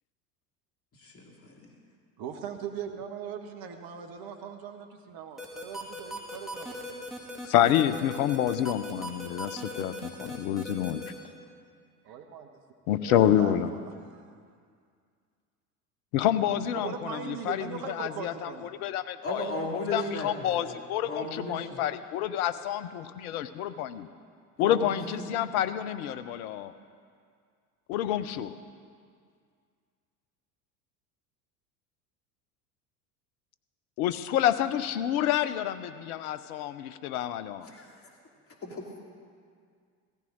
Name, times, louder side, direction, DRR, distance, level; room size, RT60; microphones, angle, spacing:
voice 1, 1.0-1.6 19.2-20.8 21.0-21.8 24.6-25.6 37.7-37.9 38.6-39.0, left 2 dB, 30° left, 0 dB, 2.7 m, -36 dB
voice 2, 2.2-6.7 12.0-12.5 13.0-14.3 16.7-18.7, right 7 dB, 50° right, 4 dB, 1.4 m, -40 dB
sound 1, 5.4-11.1, left 1 dB, ahead, 2.8 m, -38 dB
voice 3, 7.4-11.0 12.9-13.7 16.1-18.5 18.8-19.4 19.9-24.1 24.6-26.7 27.9-28.5 34.0-37.7, left 11 dB, 65° left, 13 dB, 0.9 m, -28 dB
16.5 x 14.5 x 4.0 m, 2.1 s
hypercardioid pair, 75°, 48 cm